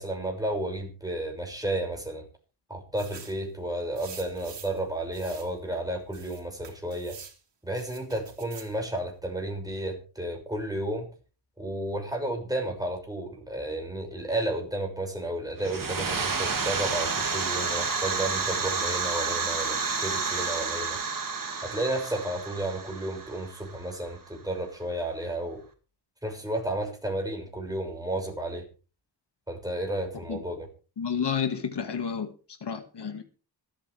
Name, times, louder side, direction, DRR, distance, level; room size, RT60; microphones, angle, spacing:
voice 1, 0.0-2.3 2.7-7.2 7.6-11.1 11.6-21.0 21.6-25.6 26.2-28.7 29.5-30.7, right 1 dB, 10° right, 6.3 m, -32 dB
sound 1, 3.0-3.4 4.0-4.8 5.1-5.5 6.1-7.4 7.8-8.7, right 6 dB, 80° right, 3.1 m, -46 dB
sound 2, 15.6-24.1, right 4 dB, 50° right, 2.4 m, -30 dB
voice 2, 31.0-32.3 32.6-33.2, left 7 dB, 75° left, 2.1 m, -30 dB
26.0 x 8.9 x 3.5 m
wide cardioid pair, 70°, 42 cm